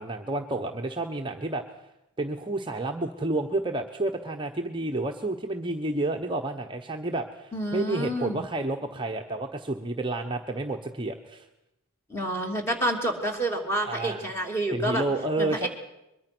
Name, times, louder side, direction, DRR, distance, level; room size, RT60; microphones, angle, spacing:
voice 1, 0.0-1.6 2.2-11.5 13.8-14.3 14.7-15.7, right 2 dB, 20° right, 3 dB, 1.0 m, -30 dB
voice 2, 7.5-8.4 12.1-15.1 15.4-15.7, right 1 dB, 10° left, 2 dB, 2.9 m, -28 dB
22.5 x 22.5 x 6.2 m, 0.91 s
head